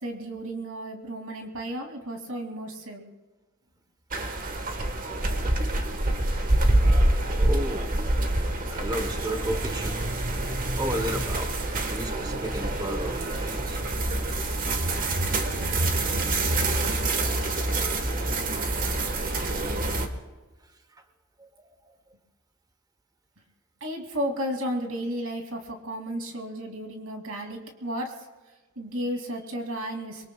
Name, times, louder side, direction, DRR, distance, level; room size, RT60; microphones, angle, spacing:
voice 1, 0.0-3.0 23.8-28.3 28.8-30.3, equal, 85° right, 2 dB, 2.6 m, -33 dB
sound 1, 4.1-20.1, right 2 dB, 40° right, 1.4 m, -26 dB
voice 2, 6.8-7.9 8.7-10.0 10.8-13.8 19.8-19.9 20.9-21.0 21.4-22.0, equal, 20° right, 8 dB, 0.9 m, -34 dB
26.5 x 23.0 x 2.3 m, 1.3 s
head